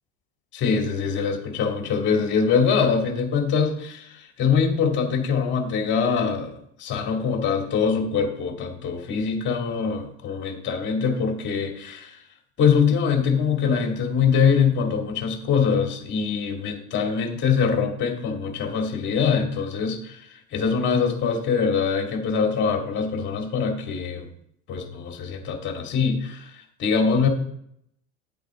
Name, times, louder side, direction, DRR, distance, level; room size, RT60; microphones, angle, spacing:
voice 1, 0.5-12.2 12.6-24.3 24.7-27.3, left 6 dB, 35° left, 2 dB, 2.5 m, -23 dB
11.0 x 8.0 x 3.7 m, 0.71 s
supercardioid pair, 135°, 30 cm